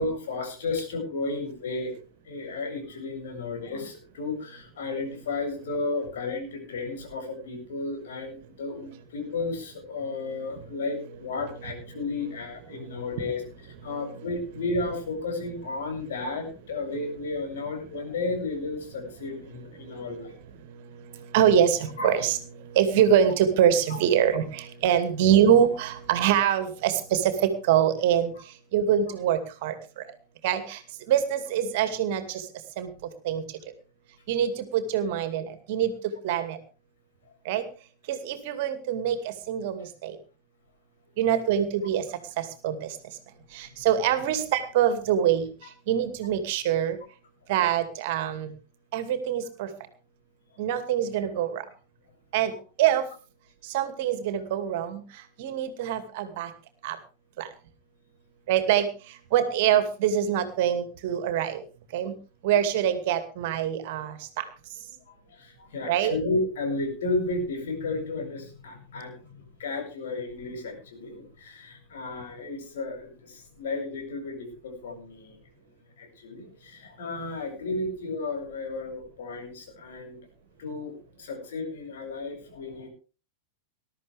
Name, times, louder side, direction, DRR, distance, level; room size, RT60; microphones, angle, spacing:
voice 1, 0.0-1.9 2.3-13.4 13.8-20.4 22.0-22.2 23.9-24.0 52.5-52.6 65.3-75.4 76.0-80.2 80.6-82.9, left 3 dB, 60° left, 3 dB, 7.5 m, -33 dB
voice 2, 12.7-13.1 13.8-14.0 19.8-20.3 20.6-30.1 30.4-30.8 31.1-32.5 32.8-32.9 33.2-33.4 34.3-36.6 37.4-37.6 38.1-40.2 41.2-42.1 42.4-43.0 43.5-47.0 47.5-48.5 48.9-49.7 50.6-51.7 52.3-52.5 52.8-53.1 53.6-56.5 56.8-57.0 57.4-57.5 58.5-61.6 61.9-62.1 62.4-64.5 65.8-66.2, right 9 dB, 50° right, 10 dB, 2.4 m, -25 dB
20.5 x 13.0 x 3.5 m, 0.34 s
figure-of-eight pair, 90°, 0 cm